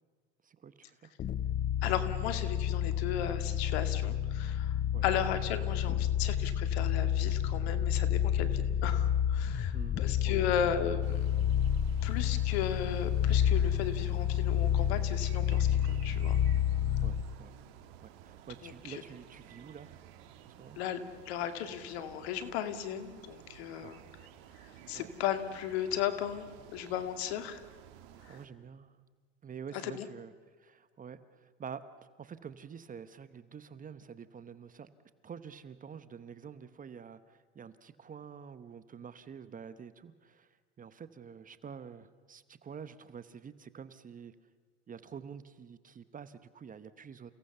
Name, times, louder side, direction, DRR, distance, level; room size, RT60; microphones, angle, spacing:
voice 1, 0.4-1.1 4.9-5.0 9.7-10.5 17.0-17.5 18.0-20.1 20.4-20.8 23.8-24.0 24.9-25.1 28.3-29.0 29.4-30.3 30.6-34.9 35.2-44.3 44.9-47.3, right 7 dB, 25° right, 13 dB, 1.1 m, -48 dB
sound 1, 1.2-17.3, left 10 dB, 25° left, 0.6 m, -30 dB
voice 2, 1.8-11.3 12.0-16.4 18.6-19.0 20.8-24.0 24.9-27.6 28.2-28.4 29.7-30.1, left 9 dB, 70° left, 9 dB, 2.2 m, -35 dB
sound 2, 11.0-28.5, right 10 dB, 65° right, 2.2 m, -54 dB
29.5 x 17.5 x 6.9 m, 1.6 s
hypercardioid pair, 100°, 33 cm